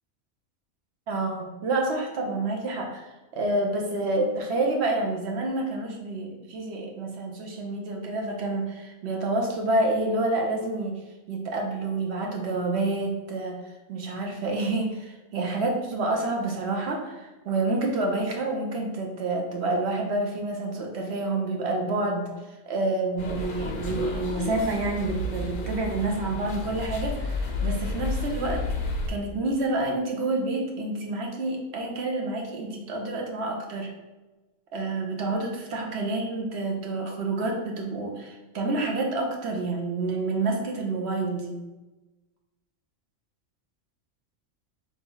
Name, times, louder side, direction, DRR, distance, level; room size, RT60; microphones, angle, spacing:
voice 1, 1.1-3.1 3.3-11.0 11.3-13.6 13.9-28.6 29.1-33.9 34.7-41.6, right 2 dB, 60° right, 1 dB, 0.9 m, -28 dB
sound 1, 23.2-29.1, left 2 dB, 50° left, 0.6 m, -31 dB
3.8 x 3.1 x 3.8 m, 1.1 s
omnidirectional pair, 1.3 m